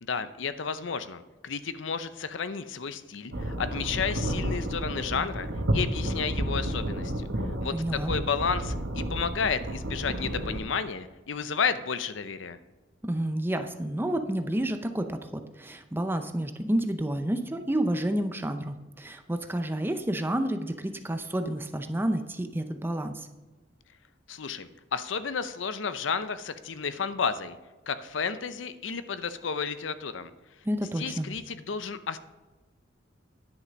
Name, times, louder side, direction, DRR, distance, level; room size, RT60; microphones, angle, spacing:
voice 1, 0.0-5.5 5.7-7.3 7.6-12.6 24.3-27.6 27.9-30.3 31.0-32.2, left 6 dB, 75° left, 12 dB, 0.6 m, -32 dB
sound 1, 3.3-10.6, right 1 dB, 70° right, 1.2 m, -31 dB
voice 2, 7.7-8.1 13.0-23.3 30.6-31.3, right 1 dB, 10° right, 7 dB, 0.5 m, -30 dB
10.0 x 6.6 x 5.1 m, 1.2 s
head